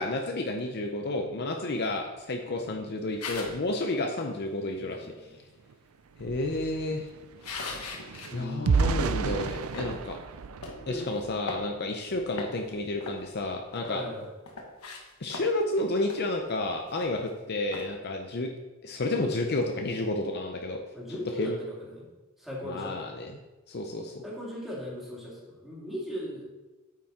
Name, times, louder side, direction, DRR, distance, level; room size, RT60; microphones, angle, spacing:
voice 1, 0.0-5.1 6.2-7.1 7.5-7.7 8.3-10.2 10.9-14.0 15.2-18.5 18.8-20.8 21.4-21.6 22.6-23.4 23.7-24.2, left 2 dB, 45° left, 3 dB, 0.6 m, -31 dB
voice 2, 2.6-3.2 4.8-5.4 8.3-8.9 10.9-11.1 13.9-14.3 20.9-22.1 22.4-23.0 24.2-26.5, left 1 dB, ahead, -6 dB, 2.5 m, -39 dB
sound 1, 3.2-3.7 6.1-8.3 8.8-8.9 9.5-10.0 10.6-10.8 11.2-12.0 12.3-12.7 13.0-14.1 14.5-15.7 16.1-16.2 16.6-16.7 16.9-17.3 17.7-17.9, left 3 dB, 80° left, 1.3 m, -40 dB
sound 2, 5.7-5.8 6.1-11.6 12.1-12.3 12.6-12.9, right 4 dB, 70° right, 0.4 m, -31 dB
8.8 x 6.1 x 4.2 m, 1.1 s
head